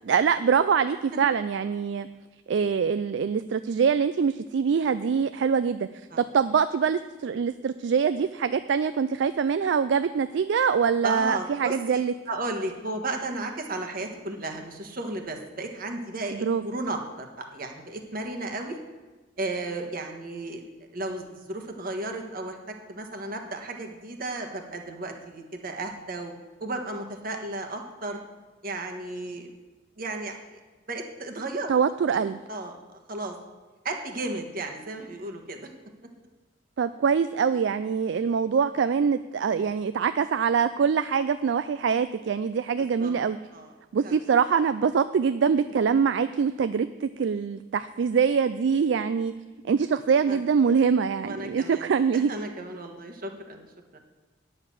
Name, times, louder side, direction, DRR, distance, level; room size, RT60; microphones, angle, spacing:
voice 1, 0.1-2.1 2.5-5.9 6.2-12.1 16.3-16.6 31.7-32.4 36.8-43.4 43.9-49.3 49.7-52.3, right 6 dB, 65° right, 12 dB, 0.3 m, -24 dB
voice 2, 11.0-18.8 19.4-20.6 20.9-26.3 26.6-28.2 28.6-29.5 30.0-30.6 30.9-31.7 32.1-32.2 32.5-32.8 33.1-33.3 33.8-35.7 43.0-43.1 43.5-43.7 44.0-44.2 50.3-50.4 51.2-53.7 53.9-54.0, right 2 dB, 50° right, 4 dB, 1.4 m, -34 dB
9.8 x 6.6 x 7.4 m, 1.3 s
head